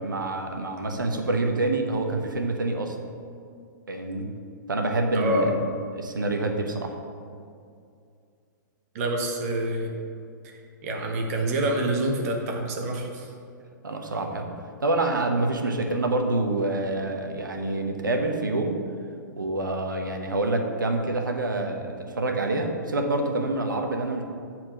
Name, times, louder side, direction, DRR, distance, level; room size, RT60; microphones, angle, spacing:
voice 1, 0.0-3.0 3.9-4.3 4.7-5.6 5.9-6.9 13.8-18.8 19.4-24.2, right 2 dB, 80° right, 3 dB, 1.1 m, -27 dB
voice 2, 5.1-5.5 8.9-9.9 10.8-13.3, right 1 dB, 50° right, 1 dB, 1.5 m, -26 dB
8.5 x 4.5 x 6.2 m, 2.4 s
figure-of-eight pair, 115°, 11 cm